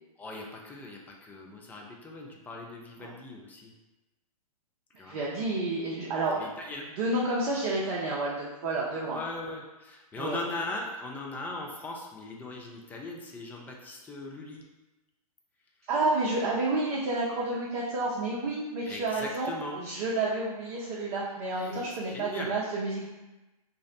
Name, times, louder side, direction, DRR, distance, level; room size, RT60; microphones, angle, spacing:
voice 1, 0.2-3.7 5.0-5.2 6.4-6.9 9.1-14.6 18.8-19.8 21.5-22.5, left 2 dB, 10° left, 0 dB, 0.3 m, -39 dB
voice 2, 5.0-6.5 7.0-9.2 10.2-10.4 15.9-23.1, right 2 dB, 50° right, -5 dB, 0.6 m, -30 dB
2.6 x 2.0 x 3.8 m, 1.1 s
hypercardioid pair, 115°, 19 cm